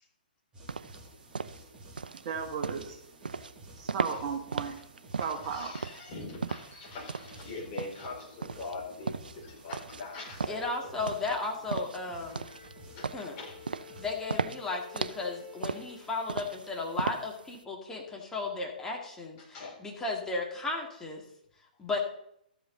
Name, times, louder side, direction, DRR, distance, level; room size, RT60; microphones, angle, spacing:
sound 1, 0.5-14.1, right 1 dB, 15° right, 2.9 m, -52 dB
sound 2, 0.7-17.6, right 5 dB, 70° right, 0.5 m, -37 dB
voice 1, 2.2-3.0 3.8-4.8 5.2-5.7, right 6 dB, 35° right, 3 dB, 2.0 m, -35 dB
voice 2, 5.2-11.0 12.4-12.5 12.9-13.6 19.4-19.8, left 3 dB, 30° left, -2 dB, 4.1 m, -43 dB
voice 3, 10.5-12.5 13.1-13.4 14.0-21.2 21.8-22.0, left 3 dB, 10° left, -1 dB, 2.0 m, -35 dB
Bowed string instrument, 12.2-16.7, left 10 dB, 65° left, 3.5 m, -51 dB
13.5 x 7.9 x 3.9 m, 0.74 s
figure-of-eight pair, 120°, 5 cm